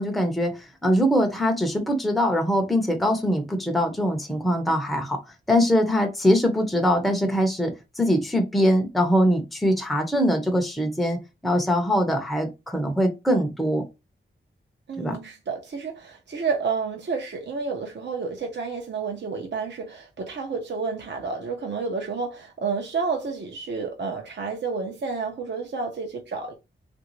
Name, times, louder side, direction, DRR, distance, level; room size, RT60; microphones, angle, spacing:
voice 1, 0.0-5.2 5.5-13.9 15.0-15.2, equal, ahead, 0.7 m, -22 dB
voice 2, 14.9-26.5, right 4 dB, 60° right, 0.7 m, -30 dB
3.3 x 2.6 x 3.0 m
wide cardioid pair, 120°, 21 cm